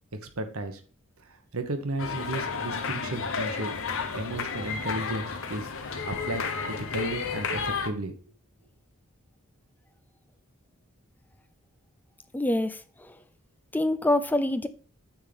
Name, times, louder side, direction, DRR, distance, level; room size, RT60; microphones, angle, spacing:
voice 1, 0.2-0.8 1.2-3.7 4.1-5.7 6.1-8.1, right 2 dB, 75° right, 1.2 m, -34 dB
sound 1, 2.0-7.9, left 5 dB, 65° left, 1.0 m, -32 dB
voice 2, 12.3-12.8 13.7-14.7, left 1 dB, 10° left, 0.5 m, -25 dB
8.9 x 3.7 x 5.2 m
head